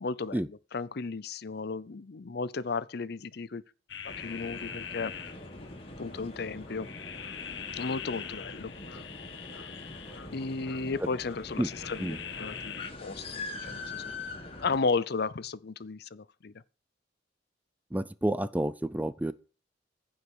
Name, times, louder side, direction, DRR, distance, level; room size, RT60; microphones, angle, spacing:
voice 1, 0.0-3.6 4.0-5.1 6.0-6.9 7.7-8.7 10.3-12.7 13.0-14.0 14.6-16.5, left 4 dB, 60° left, 0.6 m, -34 dB
sound 1, 3.9-12.9, left 8 dB, 75° left, 1.2 m, -43 dB
sound 2, 4.1-14.8, left 2 dB, 30° left, 2.0 m, -43 dB
voice 2, 17.9-19.3, right 1 dB, 10° right, 0.4 m, -29 dB
15.0 x 5.2 x 6.1 m
head